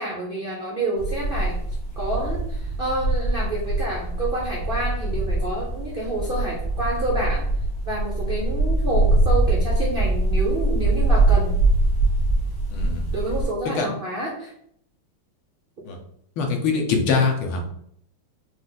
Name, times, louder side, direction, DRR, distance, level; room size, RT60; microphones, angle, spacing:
voice 1, 0.0-1.6 2.0-7.4 7.8-11.5 13.1-14.5, right 1 dB, 85° right, -4 dB, 0.4 m, -28 dB
sound 1, 1.0-13.4, right 2 dB, 50° left, 1.5 m, -23 dB
voice 2, 12.7-13.0 13.8-13.9 15.9-16.0 16.4-17.6, left 4 dB, 75° left, 3 dB, 1.7 m, -23 dB
5.1 x 2.6 x 3.9 m, 0.69 s
omnidirectional pair, 2.4 m